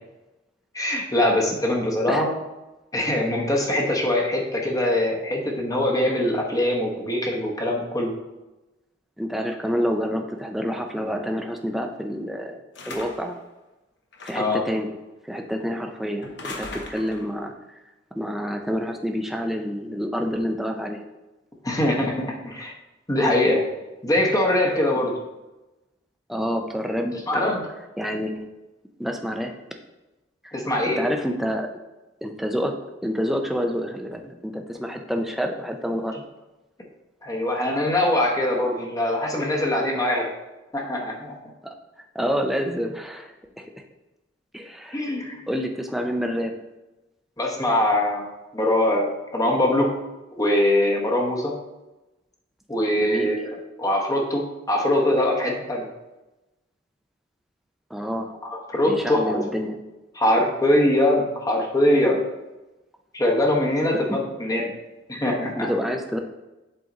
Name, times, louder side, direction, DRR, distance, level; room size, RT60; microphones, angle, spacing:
voice 1, 0.7-2.3 2.9-8.1 14.3-14.6 21.6-22.7 23.1-23.6 24.0-25.1 27.3-27.7 30.5-31.0 37.2-40.3 40.7-41.3 44.9-45.5 47.4-50.0 50.3-51.5 52.7-55.9 58.4-59.4 60.2-62.2 63.1-64.7 65.1-65.7, left 1 dB, 20° left, -1 dB, 1.0 m, -22 dB
voice 2, 9.2-12.6 12.9-13.4 14.2-15.0 15.2-17.5 18.2-21.0 26.3-27.6 28.0-28.5 29.0-29.5 30.4-30.6 30.9-31.7 32.2-32.8 33.0-36.2 42.1-43.7 44.5-45.0 45.5-46.5 53.0-53.4 57.9-58.3 58.8-59.8 63.9-64.2 65.6-66.2, equal, ahead, 3 dB, 0.5 m, -28 dB
sound 1, 12.7-13.4 14.1-14.6 16.2-17.3, left 3 dB, 65° left, 0.9 m, -38 dB
7.7 x 3.9 x 3.9 m, 1.0 s
head